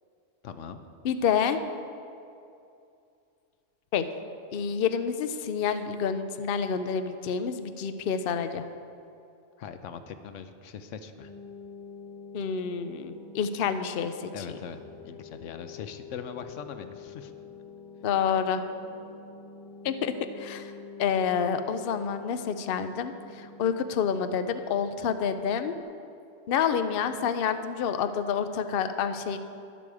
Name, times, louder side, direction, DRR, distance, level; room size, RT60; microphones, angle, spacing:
voice 1, 0.4-0.8 9.6-11.3 14.3-14.8 15.0-17.3, left 6 dB, 85° left, 9 dB, 1.1 m, -41 dB
voice 2, 1.0-1.6 3.9-4.1 4.5-8.7 12.3-14.3 18.0-18.6 19.8-20.7 21.0-25.7 26.5-29.4, left 7 dB, 60° left, 10 dB, 0.8 m, -28 dB
sound 1, 11.2-25.8, left 5 dB, 35° left, 1.4 m, -46 dB
12.0 x 11.0 x 4.8 m, 2.5 s
omnidirectional pair, 1.2 m